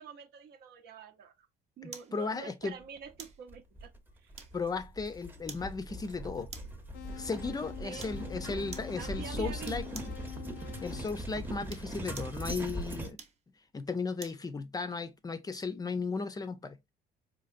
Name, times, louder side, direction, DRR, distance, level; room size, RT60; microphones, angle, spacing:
voice 1, 0.0-1.5 1.8-3.9 4.2-4.3 7.8-8.1 9.0-10.0, right 6 dB, 70° right, 0.7 m, -46 dB
voice 2, 1.8-2.7 4.5-6.5 7.1-10.1 10.8-13.2 13.7-16.8, left 4 dB, 20° left, 0.4 m, -36 dB
sound 1, 1.9-2.2 3.2-3.4 4.4-4.8 5.5-5.7 6.5-6.8 8.0-8.2 8.7-9.0 9.6-10.2 11.5-12.4 13.1-14.4 14.9-15.0, right 5 dB, 40° right, 0.9 m, -48 dB
sound 2, 3.5-13.1, right 1 dB, 10° right, 0.7 m, -41 dB
sound 3, 6.9-12.1, left 11 dB, 80° left, 0.5 m, -48 dB
4.1 x 2.8 x 2.5 m
cardioid pair, 110°, 17 cm